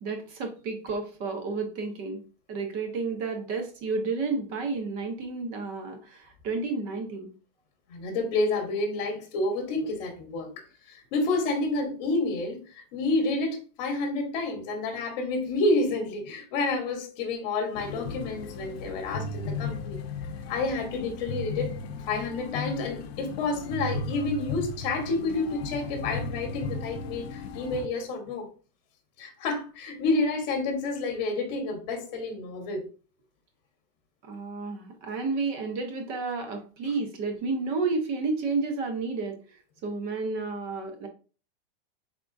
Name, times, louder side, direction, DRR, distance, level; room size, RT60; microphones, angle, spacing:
voice 1, 0.0-2.2 2.5-7.3 34.2-41.1, right 4 dB, 30° right, 0.7 m, -31 dB
voice 2, 7.9-10.5 10.9-20.0 20.5-21.8 22.1-28.5 29.2-32.8, left 3 dB, 45° left, 1.1 m, -29 dB
sound 1, 17.7-27.9, left 3 dB, 80° left, 0.7 m, -36 dB
3.6 x 3.6 x 2.5 m
supercardioid pair, 165°, 30 cm